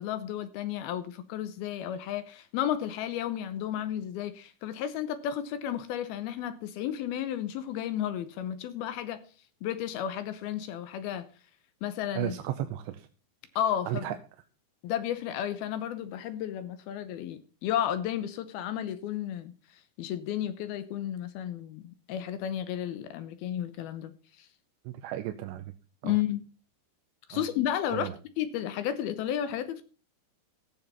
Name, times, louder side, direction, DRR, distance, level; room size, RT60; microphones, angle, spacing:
voice 1, 0.0-9.2 9.6-11.3 11.8-12.3 13.6-14.1 14.8-19.5 20.0-24.5 26.0-26.4 27.3-28.1 28.4-29.8, left 10 dB, 75° left, 2.4 m, -32 dB
voice 2, 12.1-13.1 13.9-14.2 24.9-25.7 26.0-26.2 27.3-27.5 27.9-28.2, right 13 dB, 80° right, 2.9 m, -34 dB
16.0 x 7.2 x 5.5 m
omnidirectional pair, 5.2 m